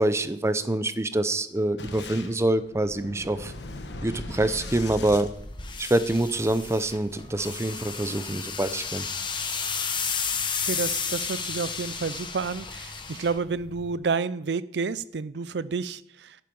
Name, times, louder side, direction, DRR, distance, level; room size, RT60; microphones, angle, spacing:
voice 1, 0.0-3.5 4.0-5.3 5.8-9.1, right 1 dB, 15° right, 12 dB, 0.6 m, -25 dB
Boom, 1.8-6.2, left 2 dB, 85° left, 1.2 m, -39 dB
sound 1, 5.3-14.0, left 6 dB, 25° left, 1.1 m, -33 dB
voice 2, 10.7-16.4, right 4 dB, 70° right, 17 dB, 0.5 m, -30 dB
11.5 x 9.1 x 5.3 m, 0.71 s
head